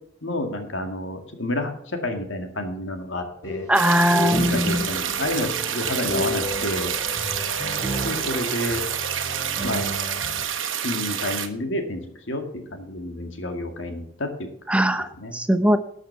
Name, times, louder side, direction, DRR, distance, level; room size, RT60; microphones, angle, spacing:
voice 1, 0.2-3.7 4.2-6.9 8.0-8.8 9.6-9.9 10.8-14.5 15.2-15.4, left 1 dB, 75° left, 5 dB, 2.1 m, -29 dB
sound 1, 3.4-10.4, left 1 dB, 15° left, 3.6 m, -32 dB
voice 2, 3.7-4.9 14.7-15.8, equal, 5° right, 9 dB, 0.6 m, -20 dB
sound 2, 3.7-11.5, right 9 dB, 85° right, 1.3 m, -28 dB
12.5 x 6.5 x 5.7 m, 0.69 s
head